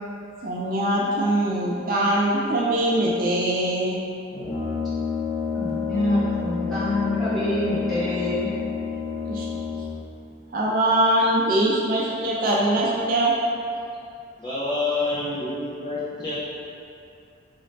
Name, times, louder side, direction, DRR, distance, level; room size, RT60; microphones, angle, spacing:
voice 1, 0.4-4.0 9.3-9.5 10.5-13.3, right 1 dB, 45° right, -4 dB, 0.3 m, -22 dB
Brass instrument, 4.3-10.1, left 5 dB, 50° left, 0.9 m, -29 dB
voice 2, 5.5-8.5, left 1 dB, ahead, -13 dB, 1.3 m, -25 dB
voice 3, 14.4-16.4, left 2 dB, 25° left, -10 dB, 0.4 m, -27 dB
4.1 x 2.5 x 3.2 m, 2.5 s
head